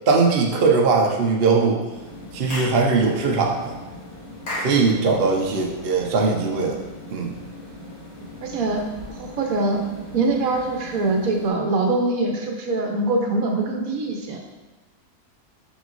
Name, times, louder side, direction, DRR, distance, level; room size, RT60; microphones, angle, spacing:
voice 1, 0.1-1.8 2.3-3.7 4.6-6.8 7.1-7.3, right 4 dB, 50° right, 0 dB, 0.8 m, -20 dB
sound 1, 1.9-11.5, left 2 dB, 85° left, 2.2 m, -40 dB
Clapping / Chirp tweet, 2.5-2.8 4.5-4.8, left 1 dB, 65° left, 2.1 m, -30 dB
voice 2, 8.4-8.8 9.1-9.8 10.1-14.4, right 2 dB, 65° right, 2 dB, 1.2 m, -23 dB
6.3 x 5.9 x 2.6 m, 1.3 s
omnidirectional pair, 1.6 m